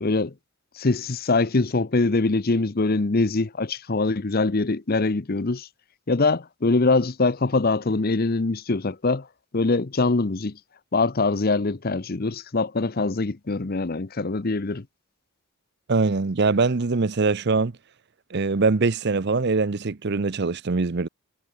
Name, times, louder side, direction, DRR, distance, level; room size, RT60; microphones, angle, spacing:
voice 1, 0.0-0.3 0.8-5.7 6.1-9.3 9.5-10.6 10.9-14.8, left 3 dB, 45° left, 0.8 m, -23 dB
voice 2, 15.9-17.7 18.3-21.1, right 4 dB, 50° right, 0.7 m, -22 dB
head